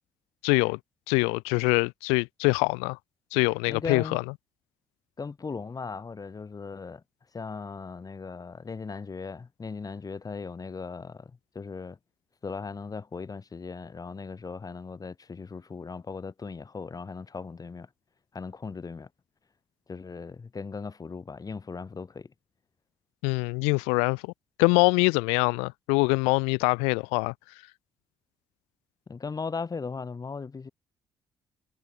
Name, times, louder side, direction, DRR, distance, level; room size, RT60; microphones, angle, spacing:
voice 1, 0.4-0.8 1.1-3.0 3.3-4.2 23.2-24.3 24.6-27.3, left 34 dB, 90° left, 0.6 m, -24 dB
voice 2, 3.7-4.2 5.2-7.0 7.3-12.0 12.4-17.9 18.3-19.1 19.9-22.3 29.1-30.7, left 4 dB, 35° left, 1.4 m, -38 dB
hypercardioid pair, 50°, 11 cm